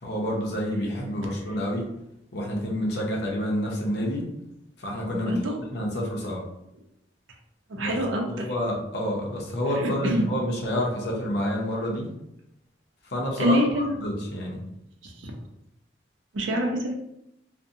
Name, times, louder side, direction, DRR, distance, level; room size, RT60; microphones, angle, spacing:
voice 1, 0.0-1.9 2.3-4.3 4.8-6.5 7.7-8.0 8.3-12.1 13.1-14.6, equal, 60° left, -2 dB, 0.6 m, -28 dB
voice 2, 5.1-5.5 7.7-8.5 9.6-10.3 13.4-14.0 15.0-15.3 16.3-16.9, equal, 85° right, 2 dB, 0.5 m, -26 dB
2.6 x 2.1 x 2.6 m, 0.83 s
head